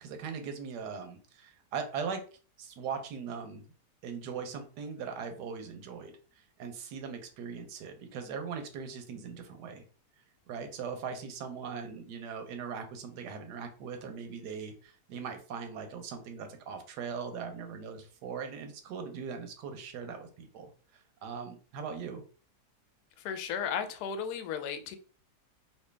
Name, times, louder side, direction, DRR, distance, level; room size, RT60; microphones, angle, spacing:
voice 1, 0.0-2.2 2.6-3.6 4.0-6.1 6.6-9.8 10.5-20.6 20.9-22.2, right 6 dB, 85° right, 1.3 m, -40 dB
voice 2, 23.2-25.0, left 7 dB, 75° left, 1.0 m, -35 dB
3.0 x 2.7 x 3.3 m
omnidirectional pair, 1.7 m